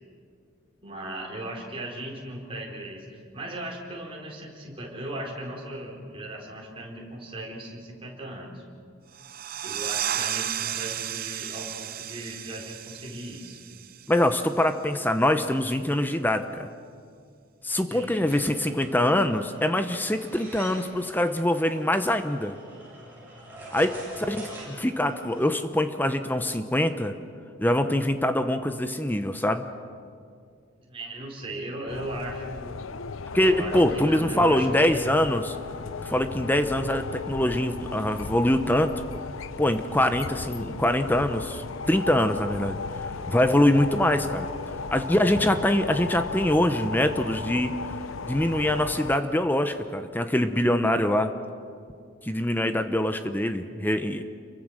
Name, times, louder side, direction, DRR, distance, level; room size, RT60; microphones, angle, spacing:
voice 1, 0.8-8.6 9.6-13.6 17.9-18.3 30.8-32.8 33.4-35.0, right 1 dB, 25° right, -2 dB, 4.3 m, -37 dB
sound 1, 9.1-14.5, right 11 dB, 45° right, 0.5 m, -33 dB
voice 2, 14.1-16.7 17.6-22.6 23.7-27.1 27.6-29.6 33.3-35.6 36.0-39.0 39.6-44.5 44.9-47.7 48.2-51.3 52.2-54.2, left 1 dB, 10° left, 9 dB, 0.8 m, -24 dB
sound 2, 18.3-25.4, right 1 dB, 10° right, 7.7 m, -45 dB
sound 3, 31.9-49.2, left 4 dB, 80° left, 0.7 m, -36 dB
28.0 x 23.0 x 6.5 m, 2.3 s
head